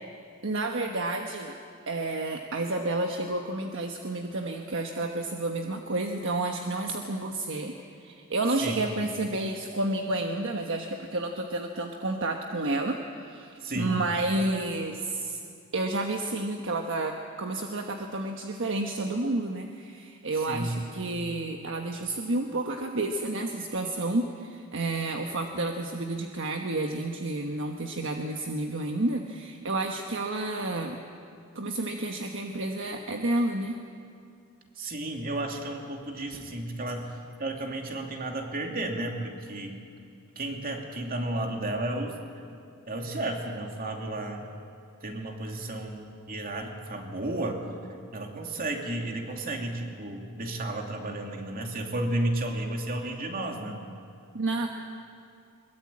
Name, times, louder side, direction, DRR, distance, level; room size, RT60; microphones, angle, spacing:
voice 1, 0.4-1.5 1.9-7.7 8.0-15.4 15.7-31.0 31.5-33.8 54.3-54.7, right 2 dB, 60° right, 3 dB, 1.3 m, -30 dB
voice 2, 13.6-14.0 20.3-20.8 34.8-39.8 40.4-42.2 42.9-44.5 45.0-47.6 48.1-53.8, right 1 dB, 40° right, 2 dB, 2.7 m, -33 dB
22.5 x 21.5 x 8.7 m, 2.4 s
head